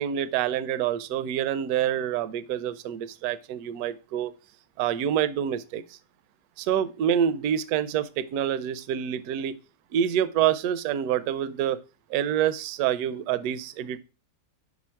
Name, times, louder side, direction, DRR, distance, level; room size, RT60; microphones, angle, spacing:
voice 1, 0.0-4.3 4.8-5.8 6.6-9.5 9.9-11.8 12.1-14.0, right 9 dB, 75° right, 0.9 m, -27 dB
6.1 x 5.1 x 4.4 m
omnidirectional pair, 2.0 m